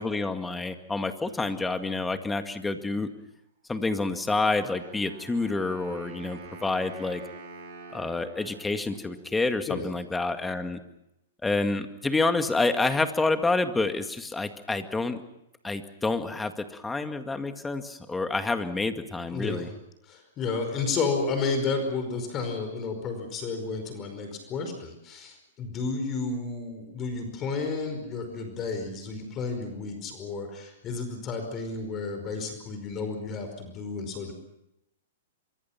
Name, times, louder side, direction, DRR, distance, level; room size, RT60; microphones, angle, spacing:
voice 1, 0.0-3.1 3.7-7.2 7.9-10.8 11.4-15.2 15.6-19.7, left 3 dB, 10° left, 8 dB, 2.0 m, -28 dB
Wind instrument woodwind instrument, 4.6-9.5, right 3 dB, 50° right, 7.8 m, -46 dB
voice 2, 19.3-19.7 20.0-34.3, left 4 dB, 30° left, 6 dB, 5.1 m, -32 dB
25.0 x 24.0 x 5.9 m, 0.84 s
hypercardioid pair, 125°, 0 cm